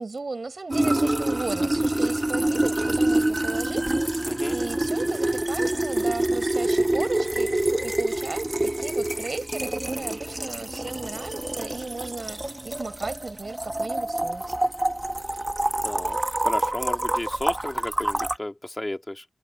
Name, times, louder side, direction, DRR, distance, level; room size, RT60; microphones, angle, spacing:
voice 1, 0.0-14.5, right 3 dB, 50° right, 7.0 m, -35 dB
sound 1, 0.7-18.4, right 1 dB, 20° right, 1.4 m, -26 dB
voice 2, 4.3-4.6 15.8-19.2, left 1 dB, 20° left, 2.4 m, -33 dB
cardioid pair, 40°, 0 cm